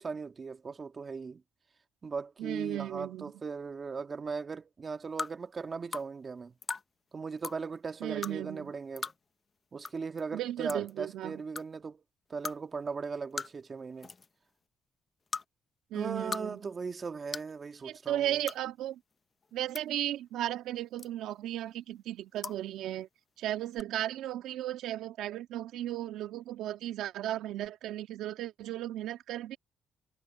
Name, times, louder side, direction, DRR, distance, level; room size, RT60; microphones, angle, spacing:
voice 1, 0.0-1.4 2.0-6.5 7.1-9.1 9.7-12.0 12.3-14.1 15.9-18.4, right 5 dB, 35° right, 1.7 m, -38 dB
voice 2, 2.4-3.3 8.0-8.7 10.3-11.4 15.9-16.6 17.8-19.0 19.5-23.1 23.4-29.6, right 13 dB, 85° right, 1.6 m, -35 dB
sound 1, 5.2-5.3 5.9-6.1 6.6-6.8 7.4-7.6 8.2-8.3 9.0-9.2 9.8-9.9 10.2-10.3 10.7-10.9 11.6-11.7 12.4-12.6 13.4-13.7 14.0-14.3 15.3-15.4 16.1-16.4 16.7-16.8 17.3-17.5 18.4-18.6 19.4-19.8 21.0-21.3 22.4-22.6 23.7-23.8, left 4 dB, 35° left, 0.7 m, -37 dB
cardioid pair, 90°, 0 cm